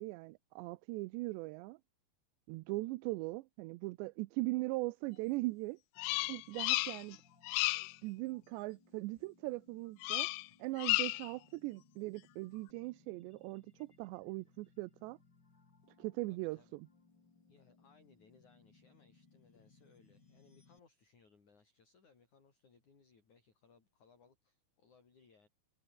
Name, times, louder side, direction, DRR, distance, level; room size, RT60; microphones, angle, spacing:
voice 1, 0.0-1.8 2.5-5.8 6.3-7.2 8.0-10.3 10.6-15.2 16.0-16.9, right 21 dB, 90° right, 2.9 m, -40 dB
Bird vocalization bird call bird song, 6.0-7.2 7.4-8.0 10.0-10.5 10.8-11.3, left 23 dB, 80° left, 2.4 m, -33 dB
sound 1, 6.0-20.8, left 4 dB, 25° left, 3.9 m, -67 dB
voice 2, 16.3-16.7 17.5-25.5, left 5 dB, 45° left, 6.2 m, -67 dB
omnidirectional pair, 4.9 m